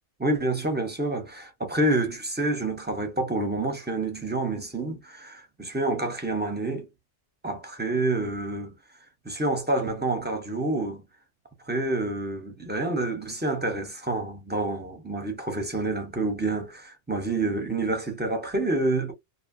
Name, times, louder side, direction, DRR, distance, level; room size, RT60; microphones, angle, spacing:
voice 1, 0.2-6.9 7.4-8.7 9.2-11.0 11.7-19.1, right 2 dB, 10° right, 0.8 m, -28 dB
2.8 x 2.2 x 2.6 m
omnidirectional pair, 1.2 m